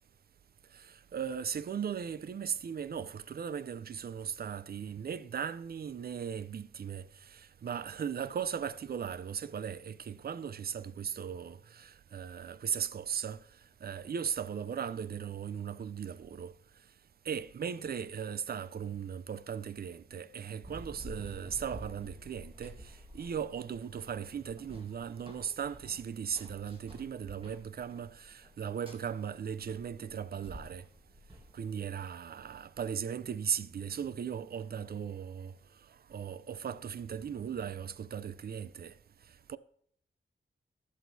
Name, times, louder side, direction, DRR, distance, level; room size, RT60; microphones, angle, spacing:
voice 1, 0.7-13.4 13.8-16.5 17.3-30.9 31.5-35.5 36.1-38.9 39.5-39.6, right 7 dB, 50° right, 0.4 m, -38 dB
Run, 20.6-32.0, equal, 25° right, 1.6 m, -51 dB
15.0 x 6.3 x 2.7 m
wide cardioid pair, 95°, 21 cm